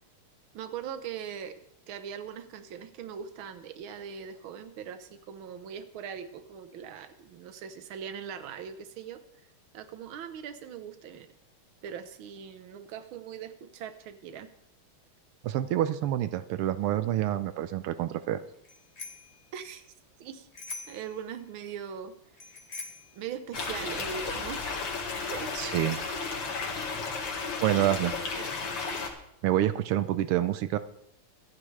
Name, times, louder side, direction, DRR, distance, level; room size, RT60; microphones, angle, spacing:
voice 1, 0.5-1.6 1.9-9.2 9.7-11.3 11.8-14.5 19.5-19.9 20.2-20.5 20.9-22.1 23.1-24.8 25.3-25.5 28.4-28.5, right 8 dB, 70° right, 10 dB, 1.8 m, -40 dB
voice 2, 15.4-18.4 25.5-26.0 27.6-28.1 28.7-28.8 29.4-30.8, right 13 dB, 85° right, 12 dB, 1.6 m, -27 dB
Bicycle bell, 18.6-19.4 20.5-21.1 22.4-23.1, left 4 dB, 35° left, 1.6 m, -42 dB
sound 1, 23.5-29.1, left 4 dB, 85° left, 2.8 m, -33 dB
24.5 x 10.0 x 3.3 m, 0.77 s
omnidirectional pair, 2.4 m